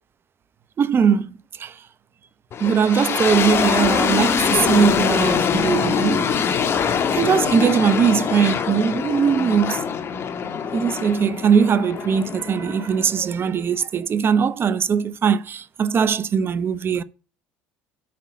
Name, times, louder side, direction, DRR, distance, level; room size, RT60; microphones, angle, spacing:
voice 1, 0.8-1.3 1.6-1.7 2.6-6.3 7.1-9.8 10.7-17.0, right 7 dB, 40° right, 0.8 m, -20 dB
sound 1, 2.5-13.4, left 7 dB, 45° left, 1.6 m, -23 dB
8.7 x 5.5 x 7.3 m
hypercardioid pair, 80°, 6 cm